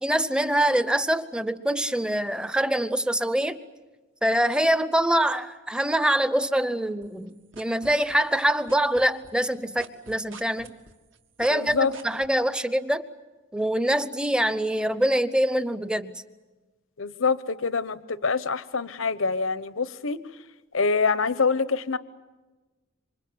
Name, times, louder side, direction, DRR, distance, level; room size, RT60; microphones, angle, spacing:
voice 1, 0.0-3.6 4.2-10.8 11.4-13.0 13.5-16.2, right 1 dB, 5° right, 13 dB, 0.8 m, -24 dB
sound 1, 7.0-8.4 8.7-12.3, right 4 dB, 70° right, 2.0 m, -44 dB
voice 2, 11.5-12.0 17.0-20.2 20.7-22.0, left 4 dB, 75° left, 15 dB, 0.9 m, -25 dB
27.5 x 25.5 x 8.0 m, 1.2 s
head